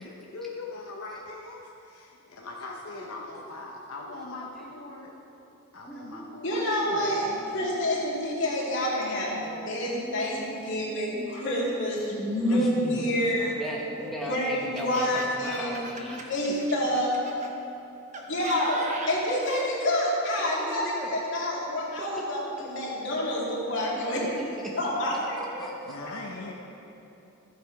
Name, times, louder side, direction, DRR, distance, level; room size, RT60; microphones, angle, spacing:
voice 1, 0.0-5.1 5.7-7.8 25.9-26.5, left 3 dB, 75° left, -1 dB, 0.8 m, -41 dB
voice 2, 5.9-6.3 9.9-11.5 12.4-16.2 16.5-16.6 20.4-21.4 22.0-22.1 22.6-22.7 24.1-24.5 25.1-25.7, equal, ahead, -4 dB, 0.9 m, -38 dB
voice 3, 6.4-13.5 14.3-15.8 16.3-17.1 18.3-22.4 22.7-24.2 24.8-25.7 26.0-26.1, left 1 dB, 55° left, -6 dB, 2.7 m, -28 dB
Laughter, 13.1-17.5 18.1-19.7, right 3 dB, 35° right, 0.8 m, -40 dB
13.5 x 7.6 x 4.7 m, 3.0 s
head